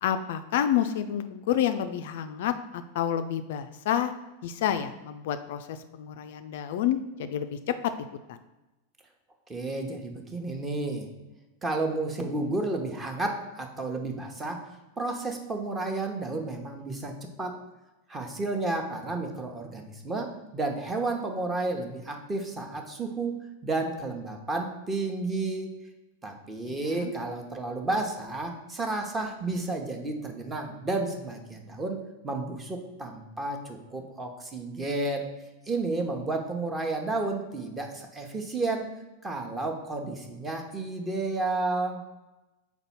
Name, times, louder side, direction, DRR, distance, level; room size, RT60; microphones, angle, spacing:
voice 1, 0.0-4.1 4.4-7.7 8.3-8.4 26.7-27.1, left 10 dB, 55° left, 9 dB, 0.3 m, -29 dB
voice 2, 9.5-11.1 11.6-14.6 15.0-17.6 18.1-25.7 26.2-35.3 35.7-38.9 39.2-42.0, right 2 dB, 15° right, 3 dB, 0.9 m, -32 dB
4.5 x 4.0 x 5.7 m, 1.1 s
figure-of-eight pair, 90°, 0 cm